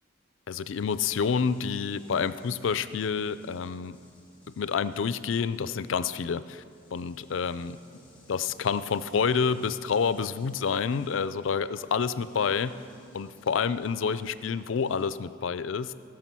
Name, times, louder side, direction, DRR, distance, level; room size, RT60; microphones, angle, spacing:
voice 1, 0.5-4.0 4.6-6.6 6.9-7.8 8.3-12.7 13.1-15.9, left 6 dB, 75° left, 14 dB, 0.4 m, -28 dB
sound 1, 0.6-15.2, equal, 10° left, 1.9 m, -56 dB
18.5 x 6.2 x 6.1 m, 2.2 s
head